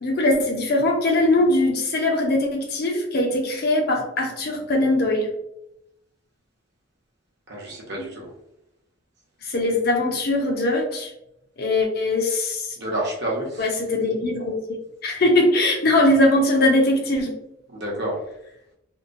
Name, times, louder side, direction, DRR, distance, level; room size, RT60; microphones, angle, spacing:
voice 1, 0.0-5.3 9.5-11.1 11.6-12.6 13.6-17.3, left 1 dB, 50° left, 2 dB, 0.6 m, -21 dB
voice 2, 7.5-8.3 12.8-13.7 17.7-18.2, right 1 dB, 55° right, -2 dB, 0.8 m, -29 dB
2.8 x 2.1 x 2.5 m, 0.81 s
head